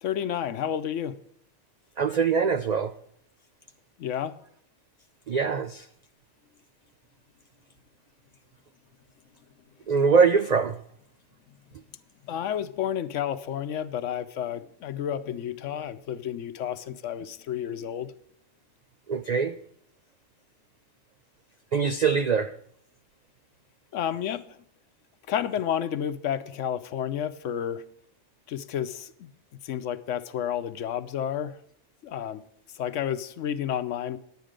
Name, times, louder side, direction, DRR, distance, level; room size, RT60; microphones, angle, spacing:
voice 1, 0.0-1.2 4.0-4.4 12.3-18.1 23.9-24.4 25.3-27.8 28.5-29.3 29.6-31.6 32.0-32.4 32.7-34.2, left 9 dB, 75° left, 12 dB, 1.0 m, -31 dB
voice 2, 2.0-2.9 5.3-5.9 9.9-10.8 19.1-19.6 21.7-22.5, right 5 dB, 75° right, 10 dB, 0.3 m, -23 dB
10.0 x 9.4 x 5.0 m, 0.66 s
omnidirectional pair, 1.3 m